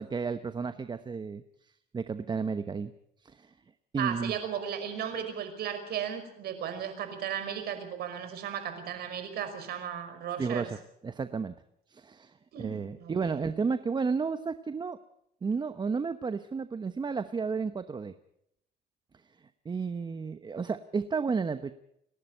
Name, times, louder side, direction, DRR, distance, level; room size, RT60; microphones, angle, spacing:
voice 1, 0.0-2.9 3.2-3.5 3.9-4.4 10.4-10.8 11.0-11.5 11.9-15.0 15.4-18.1 19.1-21.7, right 5 dB, 25° right, 11 dB, 1.0 m, -32 dB
voice 2, 4.0-10.7 12.5-13.4, right 9 dB, 70° right, 8 dB, 5.3 m, -35 dB
29.5 x 12.0 x 7.8 m, 0.75 s
cardioid pair, 110°, 17 cm